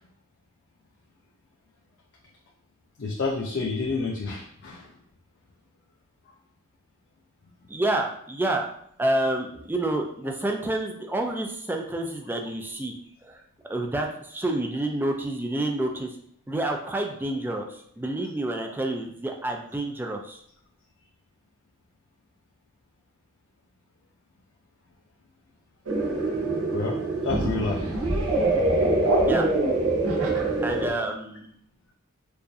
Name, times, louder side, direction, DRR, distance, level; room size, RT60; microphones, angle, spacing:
voice 1, 3.0-4.9 26.7-27.0 27.2-27.8, left 3 dB, 55° left, -1 dB, 0.5 m, -29 dB
voice 2, 7.7-8.7 9.0-12.9 13.2-13.4 13.7-16.2 16.5-20.4 29.2-29.5 30.6-31.5, right 1 dB, 10° right, 2 dB, 0.4 m, -28 dB
sound 1, 25.9-30.9, right 2 dB, 85° right, 0.8 m, -24 dB
4.7 x 2.6 x 2.6 m, 0.66 s
head